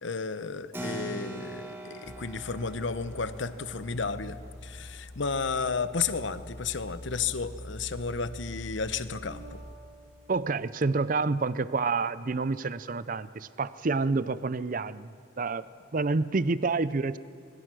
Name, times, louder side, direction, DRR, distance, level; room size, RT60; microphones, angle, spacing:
voice 1, 0.0-9.6, left 5 dB, 65° left, 13 dB, 0.9 m, -33 dB
Keyboard (musical), 0.7-6.8, right 1 dB, 10° right, 1.7 m, -44 dB
sound 1, 2.0-9.7, left 1 dB, 35° left, 1.5 m, -45 dB
Bass guitar, 9.3-12.8, right 4 dB, 60° right, 1.7 m, -56 dB
voice 2, 10.3-15.1 15.4-15.7 15.9-17.2, right 3 dB, 40° right, 16 dB, 0.5 m, -28 dB
24.5 x 21.5 x 6.2 m, 2.3 s
head